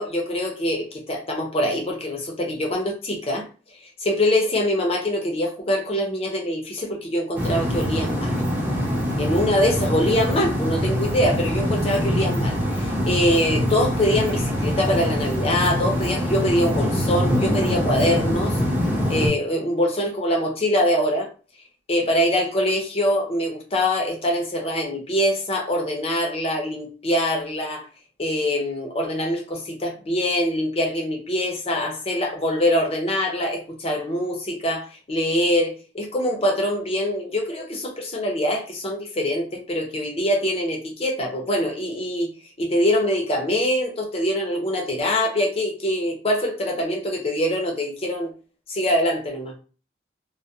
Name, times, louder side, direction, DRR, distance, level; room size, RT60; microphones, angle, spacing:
voice 1, 0.0-3.5 4.0-8.3 9.2-18.6 19.1-21.3 21.9-27.9 28.2-42.3 42.6-48.3 48.7-49.5, left 1 dB, 35° left, 0.6 m, -24 dB
sound 1, 7.3-19.3, equal, 10° right, 0.7 m, -24 dB
2.2 x 2.1 x 2.6 m
head